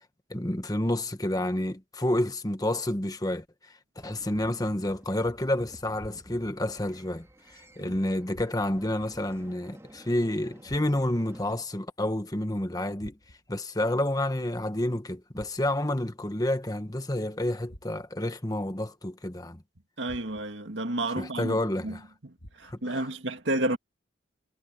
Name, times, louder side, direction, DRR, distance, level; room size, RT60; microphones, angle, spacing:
voice 1, 0.3-3.4 4.0-7.3 7.5-13.2 13.5-19.6 21.2-22.0 22.6-23.0, left 1 dB, 20° left, 1.3 m, -29 dB
sound 1, 4.0-11.6, right 1 dB, 15° right, 2.8 m, -53 dB
sound 2, 10.6-11.3 13.0-13.6 15.3-16.0 17.7-18.3 20.0-20.7 22.4-23.0, equal, 85° left, 3.6 m, -51 dB
voice 2, 20.0-22.0 22.2-23.8, right 1 dB, 75° right, 2.1 m, -31 dB
head